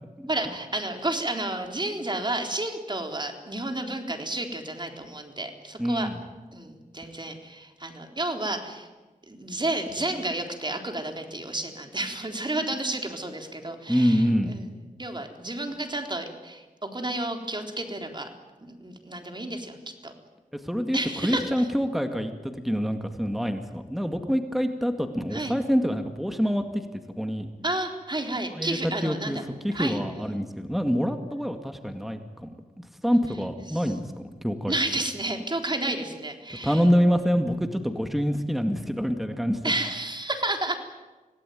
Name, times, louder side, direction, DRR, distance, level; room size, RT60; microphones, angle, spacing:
voice 1, 0.3-6.1 6.5-8.9 9.3-14.7 15.0-18.3 18.6-20.1 20.9-21.7 25.3-25.6 27.6-29.4 29.7-30.0 33.7-33.9 34.7-36.8 39.6-40.8, right 2 dB, 30° right, 4 dB, 3.8 m, -31 dB
voice 2, 5.8-6.2 13.9-14.5 20.6-27.5 28.5-29.4 29.6-34.1 34.4-34.7 36.5-39.7, equal, ahead, 6 dB, 2.1 m, -26 dB
27.0 x 17.5 x 9.3 m, 1.2 s
wide cardioid pair, 65°, 15 cm